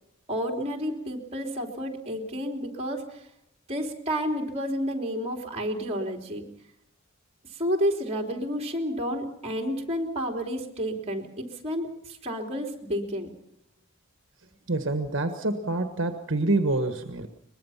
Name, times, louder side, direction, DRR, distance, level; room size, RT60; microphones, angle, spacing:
voice 1, 0.3-3.2 3.7-6.4 7.6-13.3, equal, 30° right, 2 dB, 3.4 m, -30 dB
voice 2, 14.7-17.3, right 2 dB, 65° right, 6 dB, 1.5 m, -26 dB
23.0 x 21.0 x 5.8 m, 0.80 s
head